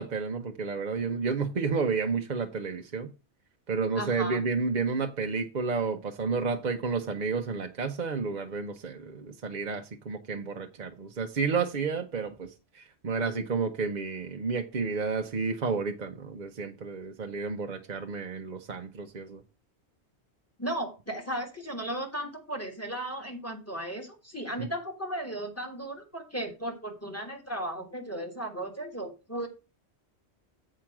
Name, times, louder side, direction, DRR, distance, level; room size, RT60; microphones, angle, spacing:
voice 1, 0.0-3.1 3.7-19.4 24.6-24.7, right 4 dB, 45° right, 4 dB, 0.8 m, -31 dB
voice 2, 4.0-4.4 20.6-29.5, right 1 dB, 15° left, 2 dB, 1.7 m, -35 dB
7.5 x 5.0 x 5.9 m, 0.29 s
omnidirectional pair, 1.1 m